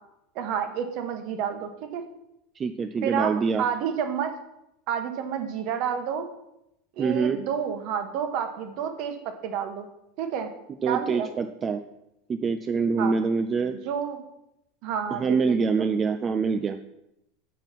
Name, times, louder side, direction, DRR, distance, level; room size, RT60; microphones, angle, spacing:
voice 1, 0.3-2.0 3.0-4.3 4.9-6.3 7.0-9.2 9.4-9.9 10.2-10.5 10.9-11.3 13.0-13.2 13.8-14.2 14.8-15.9, right 8 dB, 45° right, 6 dB, 1.1 m, -29 dB
voice 2, 2.6-3.6 7.0-7.4 10.8-11.8 12.3-13.8 15.1-16.8, right 5 dB, 20° right, 8 dB, 0.3 m, -25 dB
7.3 x 5.4 x 5.8 m, 0.86 s
supercardioid pair, 165°, 0 cm